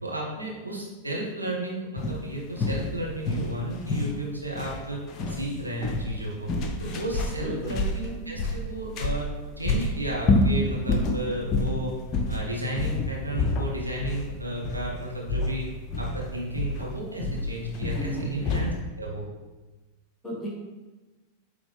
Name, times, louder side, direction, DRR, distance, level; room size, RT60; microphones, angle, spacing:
voice 1, 0.0-5.0 5.3-6.5 6.8-9.3 9.6-11.9 12.3-15.7 16.0-19.3, right 1 dB, 85° right, -3 dB, 1.3 m, -33 dB
sound 1, 2.0-18.8, left 2 dB, 35° left, 0.7 m, -29 dB
voice 2, 7.4-7.7 18.0-18.3 20.2-20.5, equal, 10° left, -4 dB, 1.8 m, -33 dB
8.0 x 3.5 x 3.4 m, 1.2 s
figure-of-eight pair, 90°, 0 cm